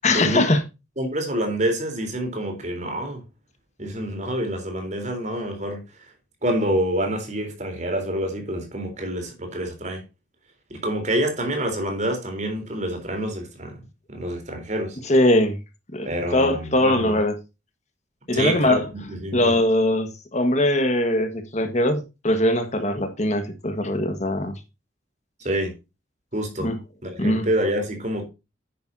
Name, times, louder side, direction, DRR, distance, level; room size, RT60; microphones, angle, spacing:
voice 1, 0.0-0.6 15.0-15.6 15.9-17.3 18.3-18.8 19.3-24.5 26.6-26.8 27.2-27.5, left 1 dB, 40° left, 1.5 m, -21 dB
voice 2, 1.0-3.2 3.8-5.8 6.4-10.0 10.7-13.7 14.1-15.0 16.0-17.2 18.3-19.5 25.4-25.7 26.3-26.7 27.0-28.2, right 1 dB, 40° right, 3.7 m, -27 dB
9.9 x 9.5 x 2.7 m
head